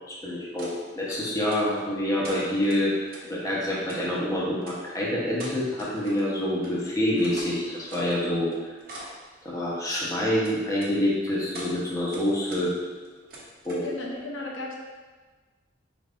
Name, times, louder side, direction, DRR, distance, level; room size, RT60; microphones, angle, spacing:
voice 1, 0.1-0.7 0.9-2.9 3.3-8.5 9.4-12.7 13.6-13.8, left 1 dB, 20° left, -6 dB, 0.9 m, -26 dB
sound 1, 0.6-0.7 1.1-1.8 2.2-3.2 3.8-4.0 4.6-4.8 5.3-6.3 6.6-6.7 7.0-8.2 8.5-9.2 10.4-10.9 11.4-11.7 12.1-12.6 12.9-13.9, right 1 dB, 50° right, 0.9 m, -43 dB
voice 2, 13.8-14.7, left 2 dB, 80° left, -2 dB, 0.7 m, -34 dB
4.9 x 3.5 x 2.5 m, 1.4 s
head